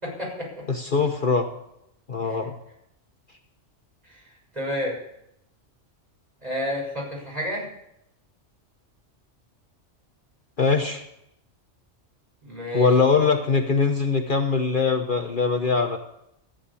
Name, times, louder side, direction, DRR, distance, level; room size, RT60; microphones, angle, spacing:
voice 1, 0.0-0.6 2.2-2.4 4.0-4.2 4.5-5.0 6.4-7.7 12.4-12.9, left 1 dB, 35° right, -3 dB, 6.3 m, -30 dB
voice 2, 0.7-1.5 2.1-2.5 10.6-11.0 12.7-16.0, left 4 dB, 45° left, 4 dB, 1.1 m, -22 dB
14.0 x 8.9 x 8.4 m, 0.80 s
omnidirectional pair, 1.2 m